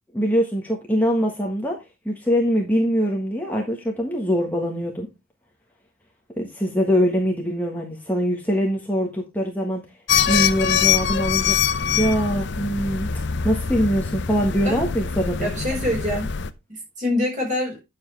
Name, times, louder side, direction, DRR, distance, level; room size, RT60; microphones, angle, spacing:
voice 1, 0.1-1.8 2.0-5.1 6.4-9.8 10.3-11.6 11.9-13.1 13.4-15.5, equal, 10° left, 1.3 m, -23 dB
sound 1, 10.1-16.5, left 7 dB, 50° left, 0.6 m, -24 dB
voice 2, 15.4-16.3 16.7-17.8, left 1 dB, 35° right, 4.9 m, -25 dB
9.5 x 7.2 x 3.3 m
head